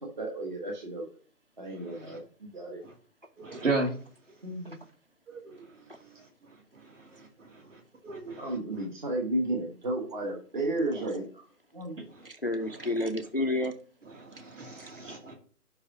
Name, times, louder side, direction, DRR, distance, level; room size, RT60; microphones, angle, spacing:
voice 1, 0.0-1.1 1.6-2.8 4.4-4.8 8.4-11.4 11.7-12.0, right 2 dB, 30° right, 1.1 m, -33 dB
voice 2, 3.4-3.9 5.3-5.6 7.2-7.3 7.7-8.5 14.2-15.3, right 3 dB, 50° right, 2.5 m, -34 dB
voice 3, 12.2-13.7 14.8-14.9, left 1 dB, 40° left, 0.4 m, -31 dB
5.5 x 4.8 x 6.4 m
hypercardioid pair, 170°, 47 cm